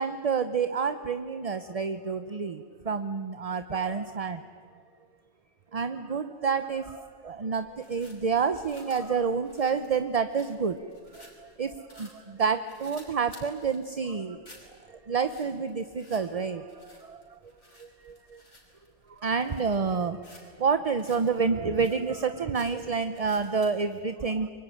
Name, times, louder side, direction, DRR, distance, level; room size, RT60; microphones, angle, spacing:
voice 1, 0.0-4.4 5.7-10.8 11.4-14.4 14.9-17.4 17.8-18.4 19.2-20.2 20.6-24.5, right 5 dB, 35° right, 10 dB, 0.7 m, -29 dB
sound 1, 6.6-23.8, left 1 dB, 75° left, 5.5 m, -56 dB
25.0 x 23.0 x 9.9 m, 2.1 s
omnidirectional pair, 1.2 m